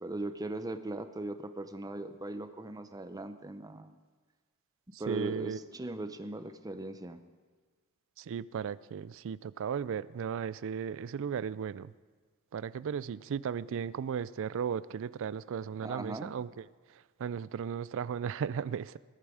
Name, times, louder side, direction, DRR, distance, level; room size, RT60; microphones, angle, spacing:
voice 1, 0.0-3.9 5.0-7.2 15.8-16.3, right 2 dB, 15° right, 9 dB, 0.6 m, -39 dB
voice 2, 4.9-5.6 8.2-11.9 12.5-16.6 17.2-19.0, right 7 dB, 65° right, 18 dB, 0.3 m, -36 dB
20.0 x 8.9 x 4.9 m, 1.4 s
head